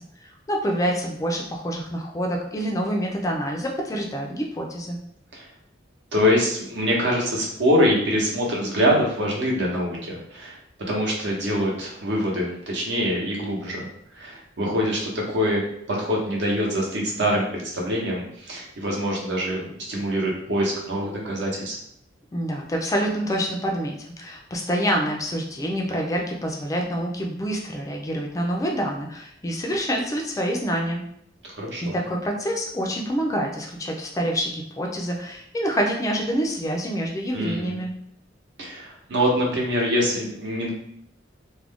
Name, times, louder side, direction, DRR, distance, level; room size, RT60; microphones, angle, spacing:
voice 1, 0.2-5.0 22.3-31.0 31.8-37.9, equal, 20° left, 1 dB, 0.3 m, -27 dB
voice 2, 6.1-10.5 10.9-13.9 14.1-21.8 31.4-31.9 37.3-37.8 38.6-40.7, equal, 65° right, -2 dB, 0.8 m, -24 dB
2.4 x 2.1 x 3.4 m, 0.72 s
head